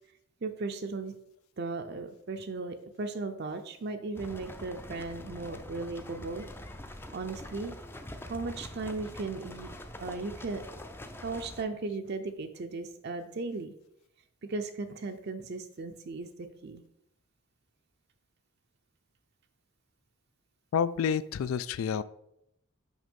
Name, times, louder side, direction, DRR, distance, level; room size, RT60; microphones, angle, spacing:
voice 1, 0.4-1.1 1.6-6.5 7.1-7.8 8.3-9.7 10.0-10.6 11.2-13.7 14.4-16.8, right 3 dB, 50° right, 6 dB, 0.5 m, -36 dB
sound 1, 4.2-11.6, left 1 dB, 10° left, 0.4 m, -44 dB
voice 2, 20.7-22.0, left 7 dB, 75° left, 16 dB, 0.3 m, -29 dB
6.2 x 5.2 x 5.2 m, 0.78 s
head